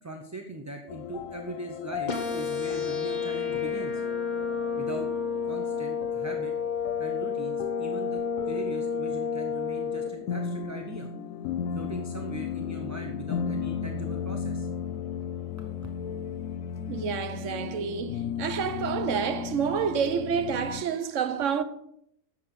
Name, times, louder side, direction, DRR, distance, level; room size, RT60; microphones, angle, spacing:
voice 1, 0.0-4.0 4.8-5.1 5.4-6.5 7.0-11.1 11.7-14.7, right 2 dB, 15° right, 0.6 m, -40 dB
sound 1, 0.9-20.8, left 7 dB, 90° left, 1.0 m, -36 dB
sound 2, 2.1-10.1, left 6 dB, 35° left, 1.4 m, -30 dB
voice 2, 16.9-21.6, right 7 dB, 70° right, 1.1 m, -29 dB
10.0 x 7.3 x 4.8 m
omnidirectional pair, 1.4 m